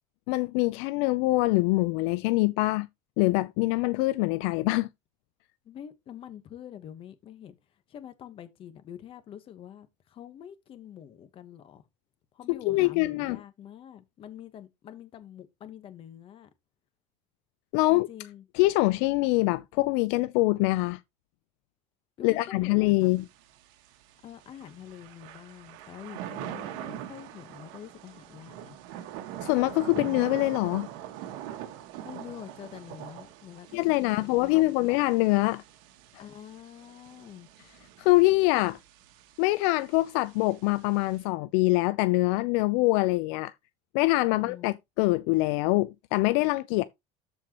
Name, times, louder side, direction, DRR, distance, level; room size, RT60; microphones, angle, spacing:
voice 1, 0.3-2.9 3.2-4.9 12.7-13.4 17.7-18.1 18.5-21.0 22.2-23.3 29.4-30.9 33.7-35.6 38.0-38.8 39.4-43.5 43.9-46.8, left 21 dB, 65° left, 0.5 m, -24 dB
voice 2, 5.6-7.6 7.9-11.8 12.3-16.5 17.9-18.5 22.2-23.2 24.2-28.8 32.0-34.9 36.2-37.5 44.3-44.7, left 10 dB, 35° left, 1.2 m, -46 dB
Thunder / Rain, 23.0-41.2, right 11 dB, 70° right, 1.6 m, -43 dB
13.5 x 4.5 x 3.0 m
cardioid pair, 155°, 17 cm